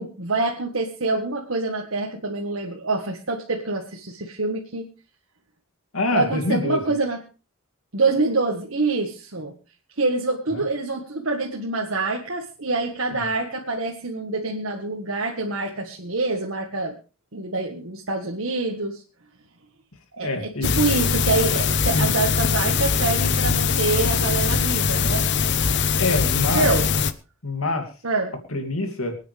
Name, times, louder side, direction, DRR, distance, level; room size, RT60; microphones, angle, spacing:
voice 1, 0.0-4.9 6.1-7.2 7.9-9.6 10.0-16.9 17.3-19.0 20.1-25.2 26.5-26.9 28.0-28.3, right 3 dB, 65° right, 0 dB, 1.7 m, -26 dB
voice 2, 5.9-6.8 10.6-10.7 20.2-20.7 21.9-22.1 26.0-26.7 27.4-27.9 28.5-29.2, left 2 dB, 75° left, 5 dB, 2.7 m, -25 dB
sound 1, 20.6-27.1, left 6 dB, 55° left, 0.8 m, -22 dB
25.0 x 9.3 x 3.5 m, 0.33 s
head